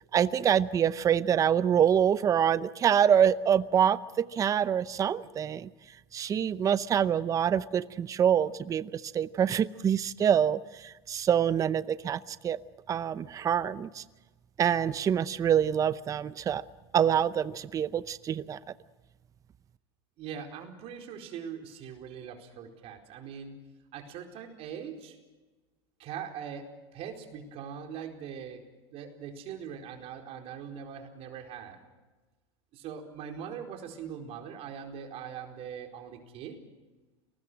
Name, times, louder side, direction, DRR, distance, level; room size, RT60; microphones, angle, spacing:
voice 1, 0.1-5.7 6.1-12.6 12.9-14.0 14.6-16.6 16.9-18.6, right 9 dB, 25° right, 16 dB, 0.7 m, -26 dB
voice 2, 20.2-23.5 23.9-25.2 26.0-28.6 28.9-31.8 32.7-36.6, right 7 dB, 45° right, 3 dB, 4.5 m, -41 dB
29.5 x 19.5 x 6.3 m, 1.2 s
supercardioid pair, 120°, 14 cm